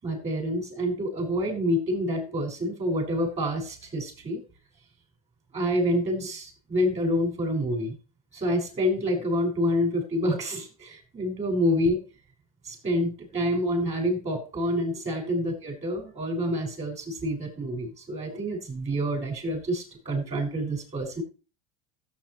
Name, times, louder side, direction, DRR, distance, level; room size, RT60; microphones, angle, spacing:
voice 1, 0.0-4.4 5.5-7.9 8.3-12.0 12.6-21.2, equal, 35° right, 2 dB, 6.2 m, -27 dB
16.5 x 8.2 x 3.2 m, 0.33 s
supercardioid pair, 95°, 19 cm